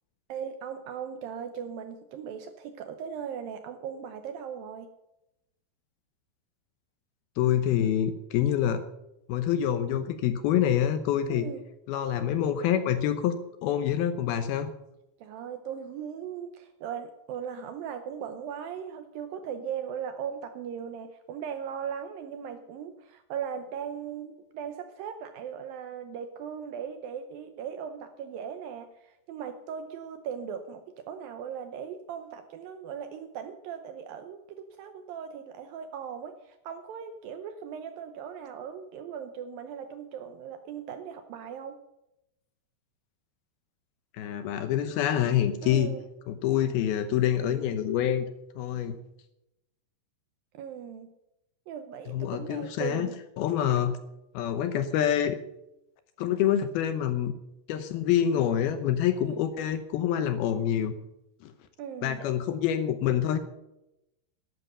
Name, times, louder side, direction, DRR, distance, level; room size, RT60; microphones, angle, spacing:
voice 1, 0.3-4.9 11.3-11.6 15.2-41.8 45.6-46.0 50.5-51.1 51.7-53.1 59.2-59.4 61.8-62.3, right 7 dB, 75° right, 8 dB, 2.2 m, -38 dB
voice 2, 7.4-8.8 9.3-11.5 11.9-13.4 13.6-14.7 44.1-46.0 46.3-48.3 48.6-49.0 52.1-53.1 53.4-54.0 54.3-55.4 56.2-57.3 57.7-60.9 61.4-61.5 62.0-63.4, left 10 dB, 75° left, 10 dB, 2.5 m, -26 dB
12.5 x 11.5 x 6.7 m, 0.88 s
omnidirectional pair, 4.9 m